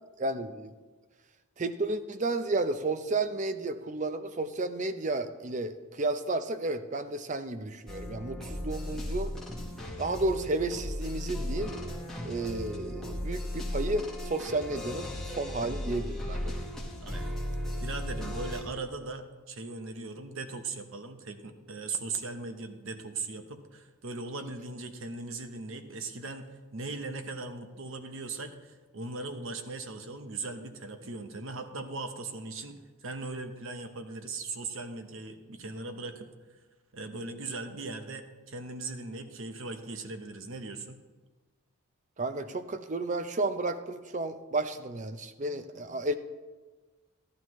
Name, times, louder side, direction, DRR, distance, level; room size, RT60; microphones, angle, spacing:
voice 1, 0.2-0.7 1.6-9.3 10.0-11.8 12.2-16.5 42.2-46.1, right 2 dB, 35° right, 10 dB, 0.5 m, -32 dB
sound 1, 7.9-18.6, left 1 dB, ahead, 1.2 m, -36 dB
voice 2, 17.0-17.3 17.8-36.3 36.9-41.0, right 3 dB, 60° right, 7 dB, 0.9 m, -39 dB
12.5 x 11.5 x 3.1 m, 1.3 s
head